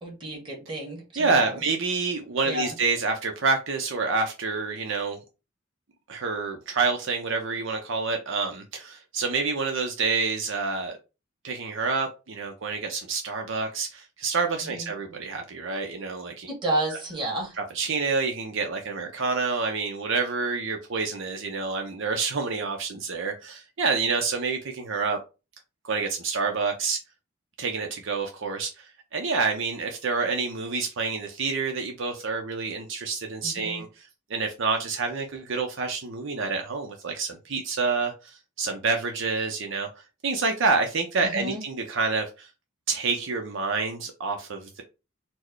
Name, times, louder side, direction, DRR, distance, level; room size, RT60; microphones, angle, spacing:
voice 1, 0.0-1.6 2.4-2.7 14.6-14.9 16.5-17.5 33.4-33.8 41.2-41.6, right 1 dB, 25° right, -1 dB, 1.7 m, -31 dB
voice 2, 1.2-5.2 6.1-11.0 11.4-16.5 17.6-25.2 25.8-27.0 27.6-39.9 40.2-42.5 42.9-44.8, right 4 dB, 65° right, 4 dB, 0.7 m, -28 dB
4.4 x 2.1 x 4.5 m, 0.29 s
head